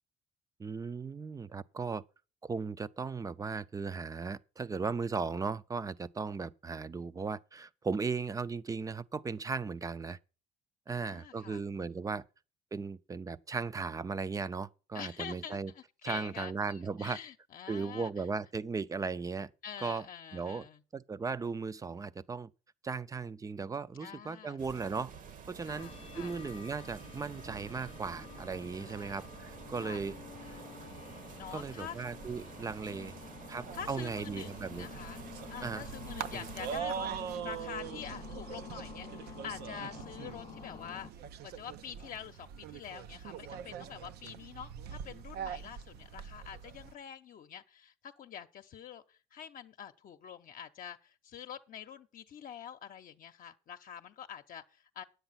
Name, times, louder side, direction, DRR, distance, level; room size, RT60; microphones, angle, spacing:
voice 1, 0.6-2.0 2.4-10.2 10.9-12.2 12.7-15.7 16.0-17.2 17.7-19.5 19.8-20.1 20.3-20.7 20.9-22.5 22.8-25.1 25.5-25.9 26.2-30.2 30.5-30.6 31.5-33.1 33.5-34.9 35.6-35.9 36.3-36.5, right 4 dB, 20° right, 0.5 m, -37 dB
voice 2, 10.9-11.6 12.0-12.2 14.9-18.1 19.6-20.8 24.0-24.6 25.6-26.4 28.2-28.5 28.8-29.3 29.8-30.0 31.3-32.0 32.9-35.2 35.5-41.1 41.4-55.0, left 8 dB, 55° left, 0.8 m, -46 dB
sound 1, 24.6-36.8, right 6 dB, 50° right, 1.1 m, -49 dB
sound 2, 25.7-41.1, left 8 dB, 35° left, 0.4 m, -50 dB
sound 3, 33.7-46.9, right 8 dB, 75° right, 0.7 m, -43 dB
9.9 x 8.1 x 5.7 m
cardioid pair, 110°, 17 cm